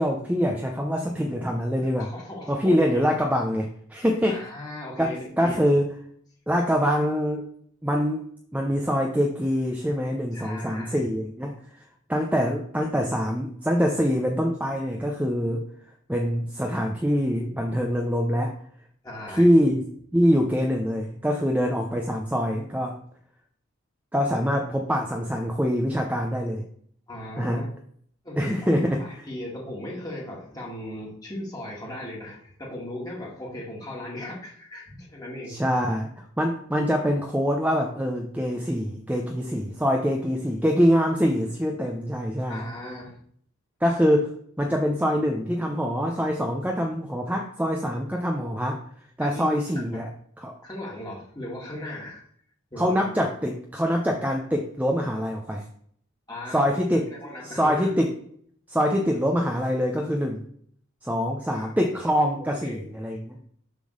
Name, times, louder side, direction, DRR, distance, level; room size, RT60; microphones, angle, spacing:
voice 1, 0.0-2.1 2.5-4.4 5.0-5.9 6.5-7.5 7.8-11.5 12.1-15.7 16.1-18.5 19.3-19.8 20.1-23.0 24.1-26.6 27.4-27.6 28.4-29.0 35.5-36.1 36.4-42.6 43.8-48.8 49.2-50.1 50.4-50.5 52.8-55.7 56.5-57.1 57.4-58.1 58.7-60.4 61.0-63.4, equal, 5° right, 1 dB, 0.6 m, -24 dB
voice 2, 2.0-2.7 4.3-5.8 10.3-11.0 19.0-19.5 27.1-27.7 28.2-35.6 42.5-43.2 49.2-49.6 49.9-50.0 50.6-52.2 52.7-53.0 56.3-56.7 57.1-57.9 61.5-61.7 62.6-62.8, left 1 dB, 20° left, -4 dB, 2.1 m, -37 dB
7.2 x 3.8 x 6.4 m, 0.62 s
head